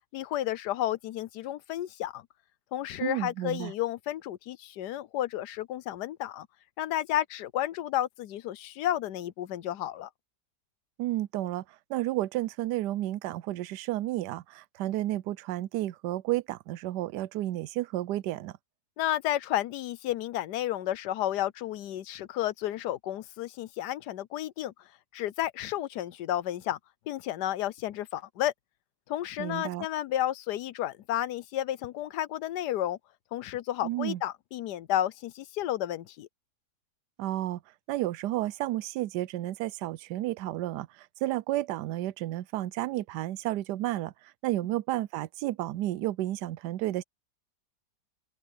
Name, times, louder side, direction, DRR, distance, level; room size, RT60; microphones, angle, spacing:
voice 1, 0.1-2.2 2.7-6.5 6.8-10.1 19.0-24.7 25.1-26.8 27.1-28.5 29.1-33.0 33.3-36.3, left 12 dB, 85° left, 1.3 m, -32 dB
voice 2, 3.0-3.7 11.0-11.6 11.9-18.6 29.4-29.9 33.8-34.2 37.2-37.6 37.9-47.0, right 15 dB, 85° right, 1.2 m, -32 dB
open air
omnidirectional pair, 1.7 m